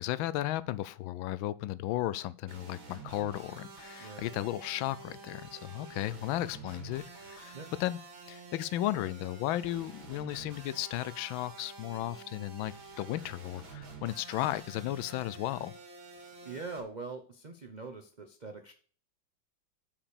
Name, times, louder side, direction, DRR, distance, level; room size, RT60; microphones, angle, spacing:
voice 1, 0.0-8.0 8.3-15.7, left 14 dB, 85° left, 1.4 m, -35 dB
sound 1, 2.5-16.8, right 4 dB, 80° right, 2.9 m, -49 dB
voice 2, 4.0-4.3 7.5-7.7 16.1-18.7, right 4 dB, 40° right, 0.6 m, -43 dB
8.8 x 5.0 x 6.9 m
omnidirectional pair, 2.1 m